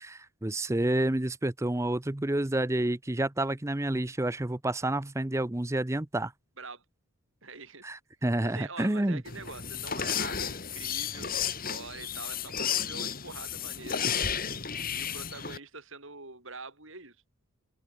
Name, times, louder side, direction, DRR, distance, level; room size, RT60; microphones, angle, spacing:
voice 1, 0.0-6.3 7.8-9.2, right 1 dB, 15° right, 0.6 m, -29 dB
voice 2, 7.4-7.9 8.4-14.1 14.9-17.2, right 3 dB, 65° right, 6.6 m, -45 dB
sound 1, 9.3-15.6, left 8 dB, 40° left, 2.9 m, -33 dB
open air
head